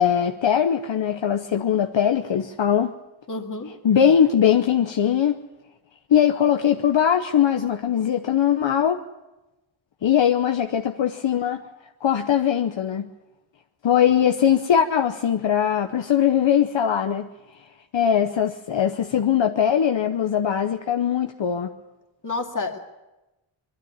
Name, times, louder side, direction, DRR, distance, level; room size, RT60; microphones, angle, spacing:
voice 1, 0.0-2.9 3.8-5.4 6.1-9.0 10.0-11.6 12.0-13.1 13.8-17.3 17.9-21.7, left 9 dB, 70° left, 0.9 m, -21 dB
voice 2, 3.3-3.7 22.2-22.8, left 3 dB, 40° left, 2.4 m, -29 dB
22.5 x 12.5 x 9.5 m
wide cardioid pair, 105°, 46 cm